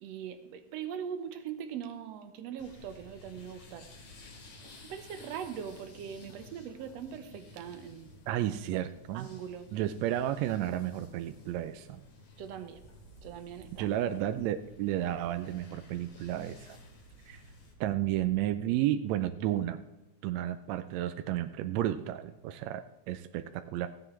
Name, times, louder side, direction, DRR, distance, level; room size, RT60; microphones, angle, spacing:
voice 1, 0.0-3.9 4.8-8.1 8.5-8.8 9.1-9.7 12.4-12.8 13.2-13.9, right 8 dB, 65° right, 8 dB, 1.8 m, -41 dB
sound 1, 2.6-17.7, left 3 dB, 60° left, 3.2 m, -54 dB
voice 2, 8.3-9.3 9.7-12.0 13.8-16.8 17.3-17.4 17.8-19.8 20.2-23.9, right 12 dB, 85° right, 9 dB, 1.5 m, -32 dB
sound 2, 12.7-18.5, right 3 dB, 50° right, 1.1 m, -57 dB
16.0 x 9.8 x 3.2 m, 0.99 s
omnidirectional pair, 3.6 m